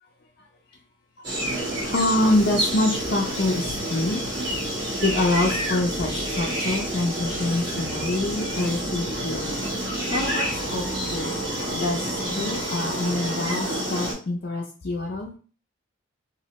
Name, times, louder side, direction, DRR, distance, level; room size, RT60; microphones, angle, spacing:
sound 1, 1.2-14.1, right 1 dB, 55° right, 1.6 m, -28 dB
sound 2, 1.4-12.3, left 1 dB, 20° right, 1.2 m, -44 dB
voice 1, 1.9-4.2 5.0-9.5 10.1-10.8 11.1-11.4 11.7-12.0 12.3-15.3, left 2 dB, 45° left, -1 dB, 0.4 m, -26 dB
3.0 x 2.6 x 2.9 m, 0.39 s
head